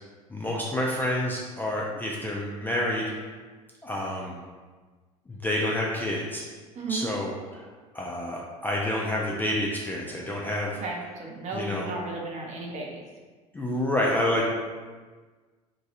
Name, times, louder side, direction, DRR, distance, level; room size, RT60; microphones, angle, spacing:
voice 1, 0.3-3.1 3.8-4.4 5.3-6.4 6.9-7.6 7.9-10.7 11.5-11.9 13.5-14.5, left 1 dB, 10° left, -3 dB, 0.3 m, -28 dB
voice 2, 6.8-7.1 10.8-13.0, right 3 dB, 35° right, -1 dB, 0.6 m, -34 dB
3.0 x 2.3 x 2.7 m, 1.4 s
figure-of-eight pair, 65°, 20 cm